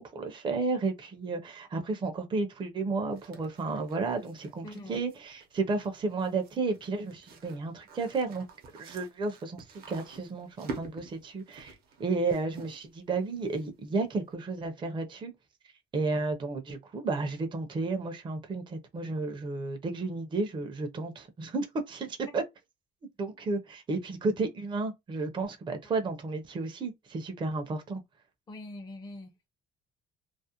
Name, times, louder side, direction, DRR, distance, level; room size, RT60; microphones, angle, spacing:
voice 1, 0.0-8.5 8.8-11.7 12.0-15.3 15.9-22.4 23.2-28.0, right 3 dB, 30° right, 0.5 m, -32 dB
sound 1, 3.1-14.0, right 4 dB, 60° right, 0.7 m, -48 dB
voice 2, 4.6-5.0 28.5-29.5, left 2 dB, 25° left, 0.5 m, -43 dB
2.4 x 2.0 x 2.8 m
cardioid pair, 110°, 17 cm